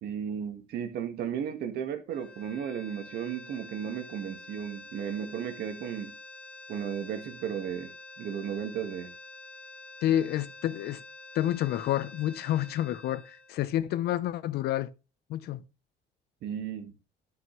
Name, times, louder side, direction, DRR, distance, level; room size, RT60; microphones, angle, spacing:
voice 1, 0.0-6.1 6.7-7.9 8.2-9.1 16.4-16.9, right 8 dB, 75° right, 1.8 m, -34 dB
sound 1, 2.1-14.3, left 2 dB, 5° left, 1.3 m, -48 dB
voice 2, 10.0-11.0 11.3-14.9 15.3-15.6, left 12 dB, 70° left, 0.8 m, -29 dB
11.0 x 5.6 x 3.2 m
cardioid pair, 110°, 17 cm